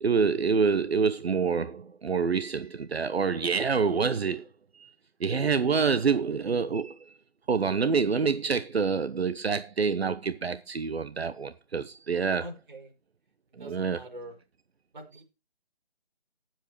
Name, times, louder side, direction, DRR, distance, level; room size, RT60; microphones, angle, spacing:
voice 1, 0.0-4.5 4.7-4.9 5.2-7.2 7.5-12.4 13.6-14.0, right 5 dB, 80° right, 0.9 m, -27 dB
voice 2, 12.1-12.9 13.6-14.4 14.9-15.2, equal, 55° right, 5.9 m, -44 dB
18.0 x 7.7 x 3.1 m
figure-of-eight pair, 165°, 31 cm